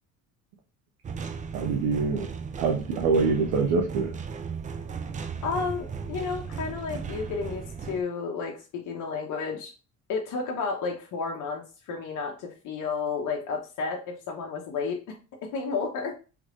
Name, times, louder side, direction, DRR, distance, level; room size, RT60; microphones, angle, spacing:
sound 1, 1.0-8.0, right 6 dB, 20° right, 0.4 m, -36 dB
voice 1, 1.5-2.3 2.6-4.1, right 4 dB, 60° right, 2 dB, 0.7 m, -25 dB
voice 2, 5.4-9.7 10.1-15.1 15.4-16.1, left 5 dB, 45° left, 0 dB, 0.9 m, -32 dB
3.3 x 3.2 x 2.5 m, 0.34 s
hypercardioid pair, 60°, 41 cm